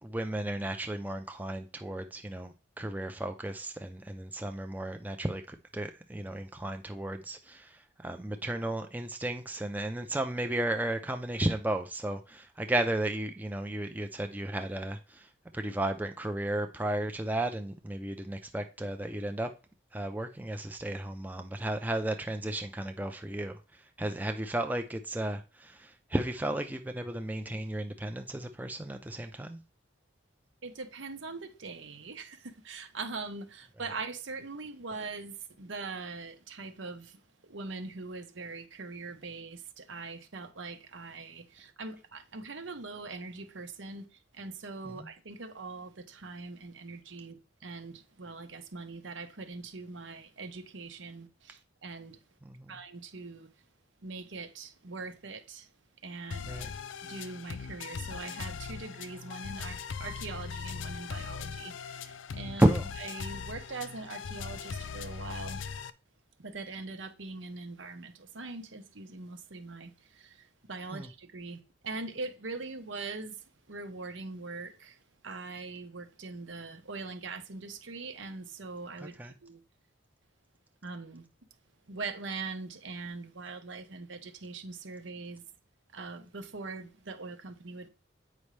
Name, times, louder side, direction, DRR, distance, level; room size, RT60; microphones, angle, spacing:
voice 1, 0.0-19.5 19.9-29.6 44.8-45.1 52.4-52.8 56.4-56.7 62.6-62.9 70.9-71.1 79.0-79.3, right 1 dB, 10° right, 0.5 m, -33 dB
voice 2, 30.6-52.2 52.7-53.5 54.0-55.7 56.0-56.6 57.0-62.6 63.0-65.6 66.4-79.2 79.4-79.6 80.8-81.3 81.9-85.4 85.9-87.9, right 3 dB, 80° right, 1.0 m, -42 dB
sound 1, 56.3-65.9, left 6 dB, 80° left, 0.5 m, -40 dB
8.5 x 5.2 x 3.3 m
head